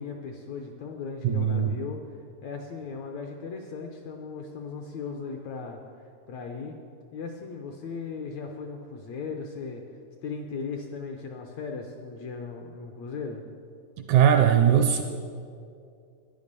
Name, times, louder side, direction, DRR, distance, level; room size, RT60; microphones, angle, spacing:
voice 1, 0.0-5.8 6.3-6.8 7.1-9.8 10.2-13.4, left 4 dB, 75° left, 3 dB, 1.7 m, -37 dB
voice 2, 1.2-1.7 14.1-15.0, right 9 dB, 75° right, 5 dB, 1.8 m, -20 dB
10.5 x 10.0 x 6.7 m, 2.3 s
omnidirectional pair, 3.9 m